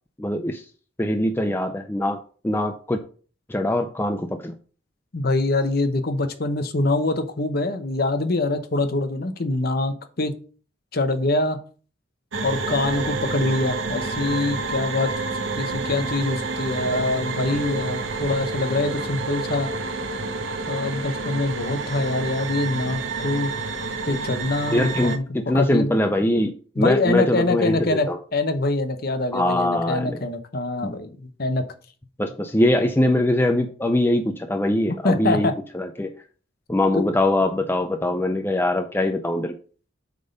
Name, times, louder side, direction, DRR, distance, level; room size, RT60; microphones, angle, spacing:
voice 1, 0.2-0.6 1.0-2.2 2.4-3.0 3.5-4.5 24.1-24.2 24.7-28.2 29.3-30.2 30.8-30.9 32.2-36.1 36.7-39.5, left 1 dB, 10° left, 6 dB, 0.4 m, -22 dB
voice 2, 5.1-10.4 10.9-11.6 12.4-15.1 15.6-19.7 20.7-23.5 24.1-25.2 25.5-25.9 26.8-28.1 28.3-31.6 35.0-35.5 36.9-37.0, left 2 dB, 50° left, 9 dB, 0.8 m, -24 dB
sound 1, 12.3-25.2, right 3 dB, 65° right, 0.9 m, -29 dB
7.8 x 3.7 x 5.1 m, 0.41 s
head